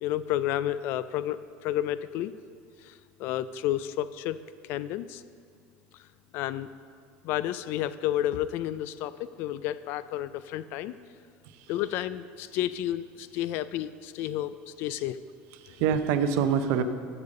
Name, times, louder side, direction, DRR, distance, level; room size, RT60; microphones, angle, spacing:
voice 1, 0.0-2.3 2.8-2.9 3.2-4.4 4.7-5.2 6.3-6.7 7.2-11.0 11.7-15.2 15.7-15.8, left 12 dB, 55° left, 15 dB, 0.3 m, -31 dB
voice 2, 15.5-16.8, right 7 dB, 70° right, 9 dB, 0.7 m, -26 dB
8.3 x 6.9 x 6.5 m, 2.1 s
cardioid pair, 155°, 4 cm